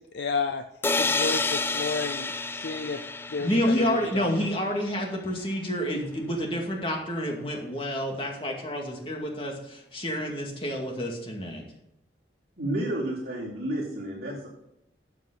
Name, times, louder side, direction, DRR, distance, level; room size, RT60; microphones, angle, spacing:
voice 1, 0.1-0.6 1.0-3.0 3.3-4.3, left 4 dB, 65° left, 7 dB, 0.6 m, -31 dB
sound 1, 0.8-4.6, left 3 dB, 10° left, 0.3 m, -29 dB
voice 2, 3.4-11.6, equal, 30° left, 0 dB, 2.2 m, -29 dB
voice 3, 12.6-14.5, right 1 dB, 55° right, -6 dB, 4.6 m, -31 dB
13.0 x 7.5 x 4.0 m, 0.81 s
head